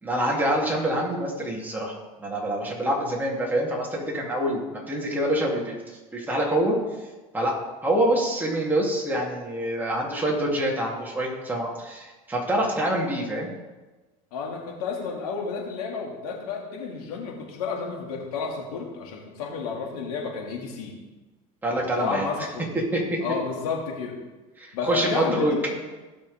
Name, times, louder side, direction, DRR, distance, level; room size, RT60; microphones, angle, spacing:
voice 1, 0.0-5.8 6.1-6.8 7.3-7.5 7.8-13.5 21.6-22.2 22.9-23.2 24.6-25.5, right 1 dB, 10° right, -3 dB, 3.3 m, -26 dB
voice 2, 14.3-21.0 21.9-22.7 23.2-24.2 24.7-25.8, left 5 dB, 85° left, -1 dB, 2.8 m, -31 dB
17.5 x 6.2 x 3.7 m, 1.2 s
supercardioid pair, 110°, 18 cm